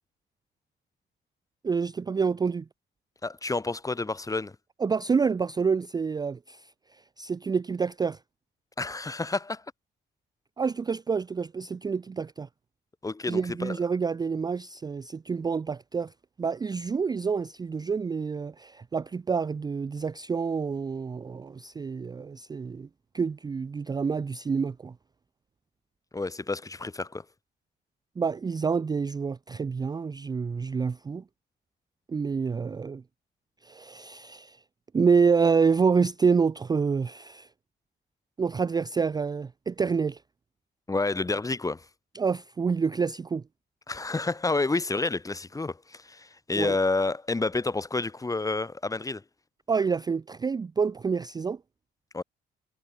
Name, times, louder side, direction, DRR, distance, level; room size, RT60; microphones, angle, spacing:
voice 1, 1.6-2.7 4.8-8.2 10.6-12.5 13.3-16.1 16.4-22.9 23.1-24.9 28.2-31.2 32.1-33.0 33.6-34.6 34.9-37.5 38.4-40.2 42.1-43.4 46.6-46.8 49.7-51.6, right 5 dB, 20° right, 0.4 m, -27 dB
voice 2, 3.2-4.6 8.8-9.6 13.0-13.8 26.1-27.2 40.9-41.9 43.9-49.2 52.1-52.2, left 3 dB, 15° left, 1.0 m, -29 dB
cardioid pair, 90°, 20 cm